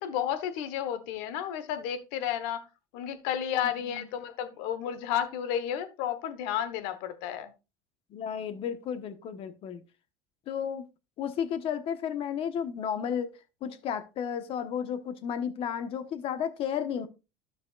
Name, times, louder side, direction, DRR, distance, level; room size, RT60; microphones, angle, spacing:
voice 1, 0.0-2.6 2.9-7.5, left 10 dB, 75° left, 1.2 m, -32 dB
voice 2, 8.1-9.8 10.5-10.9 11.2-13.3 13.6-17.1, left 8 dB, 50° left, 1.2 m, -33 dB
12.5 x 6.1 x 2.4 m
supercardioid pair, 115°, 12 cm